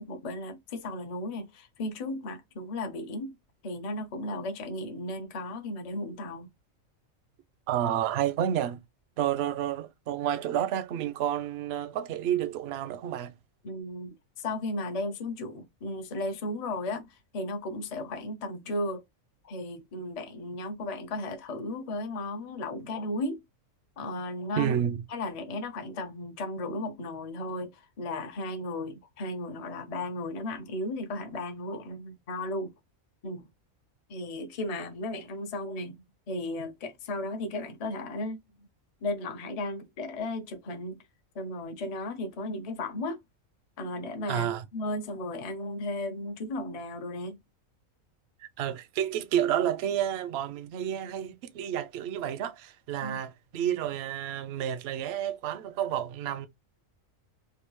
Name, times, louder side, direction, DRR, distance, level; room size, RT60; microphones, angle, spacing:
voice 1, 0.0-3.3 3.6-6.5 13.6-19.0 19.4-23.4 24.0-24.7 25.1-32.7 33.2-33.5 34.1-36.0 36.3-38.4 39.0-41.0 41.3-43.2 43.8-47.4 53.0-53.2, left 1 dB, 40° left, 0.5 m, -35 dB
voice 2, 7.7-8.8 9.2-13.3 24.6-25.0 44.3-44.6 48.6-56.5, right 10 dB, 65° right, 0.7 m, -30 dB
3.4 x 2.5 x 3.0 m
omnidirectional pair, 1.4 m